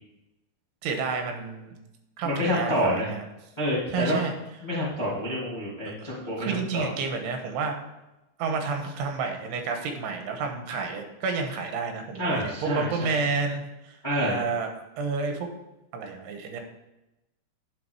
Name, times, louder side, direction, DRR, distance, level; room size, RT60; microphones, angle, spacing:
voice 1, 0.8-1.8 2.2-3.2 3.9-4.3 5.9-6.0 6.4-7.8 8.4-14.7 15.0-15.5 15.9-16.6, right 4 dB, 90° right, 5 dB, 3.2 m, -30 dB
voice 2, 2.2-3.1 3.6-4.2 4.6-6.9 12.2-13.1 14.0-14.4, equal, 20° left, -7 dB, 1.4 m, -28 dB
9.4 x 6.0 x 4.7 m, 0.96 s
omnidirectional pair, 4.7 m